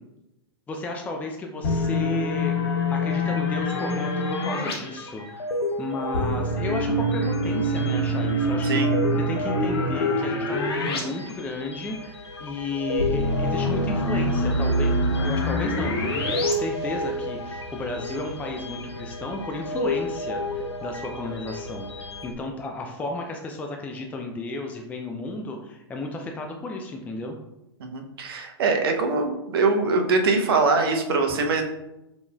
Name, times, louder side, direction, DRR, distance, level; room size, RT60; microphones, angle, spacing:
voice 1, 0.7-2.6 2.9-5.5 5.8-8.8 9.1-27.4, left 2 dB, 10° left, 2 dB, 0.4 m, -33 dB
sound 1, 1.6-4.7 6.1-11.0 11.3-11.4 13.0-16.5, equal, 65° left, 0.9 m, -25 dB
sound 2, 3.0-22.3, left 2 dB, 90° left, 0.4 m, -33 dB
voice 2, 27.8-31.6, right 3 dB, 60° right, 4 dB, 0.7 m, -23 dB
5.2 x 3.0 x 2.3 m, 0.91 s
figure-of-eight pair, 105°, 14 cm